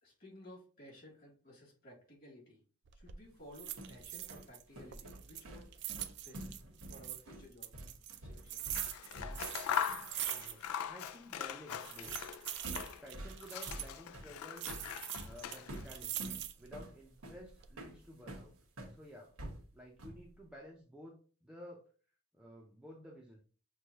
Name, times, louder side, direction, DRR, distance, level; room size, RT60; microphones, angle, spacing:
voice 1, 0.0-2.6 2.9-6.5 6.9-7.8 8.2-8.6, left 1 dB, 45° left, -2 dB, 2.2 m, -56 dB
sound 1, 2.9-3.2 3.5-4.6 4.9-7.2 7.6-10.8 11.1-11.2 11.7-14.0 14.6-16.7 17.2-17.7, right 13 dB, 50° right, 0.4 m, -43 dB
sound 2, 3.4-9.6 9.9-10.1 12.0-12.3 12.6-19.0 19.4-20.3, right 1 dB, 90° right, 1.1 m, -48 dB
Scissors, 8.6-13.1 13.4-16.0, left 9 dB, 90° left, 0.3 m, -41 dB
voice 2, 10.0-12.2 13.0-14.8 15.2-16.3 16.6-18.6 18.9-19.4 19.7-21.9 22.3-23.4, equal, 5° right, -2 dB, 0.5 m, -53 dB
6.3 x 2.3 x 2.8 m, 0.38 s
head